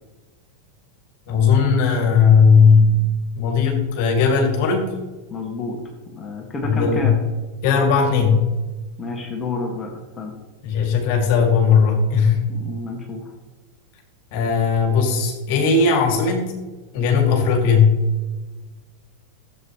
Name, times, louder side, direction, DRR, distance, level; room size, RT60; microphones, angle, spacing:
voice 1, 1.3-3.0 3.4-4.9 6.6-7.1 7.6-8.5 10.6-12.4 14.3-16.5 16.9-18.0, left 5 dB, 60° left, 2 dB, 2.4 m, -17 dB
voice 2, 5.3-5.8 6.1-7.1 9.0-9.9 10.2-10.3 12.5-13.3, left 3 dB, 25° left, 0 dB, 1.8 m, -29 dB
13.0 x 8.2 x 3.1 m, 1.2 s
hypercardioid pair, 105°, 0 cm